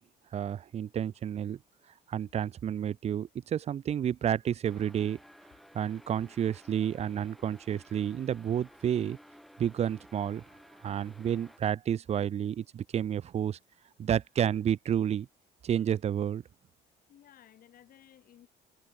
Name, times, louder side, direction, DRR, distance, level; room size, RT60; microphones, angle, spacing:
voice 1, 0.3-1.6 2.1-5.2 5.7-9.2 9.6-10.4 10.8-13.6 14.0-15.3 15.6-16.4, right 9 dB, 40° right, 0.6 m, -30 dB
sound 1, 4.6-11.6, equal, ahead, 1.8 m, -55 dB
voice 2, 6.6-7.0 9.0-9.1 17.1-18.5, left 11 dB, 60° left, 7.0 m, -58 dB
cardioid pair, 110°, 17 cm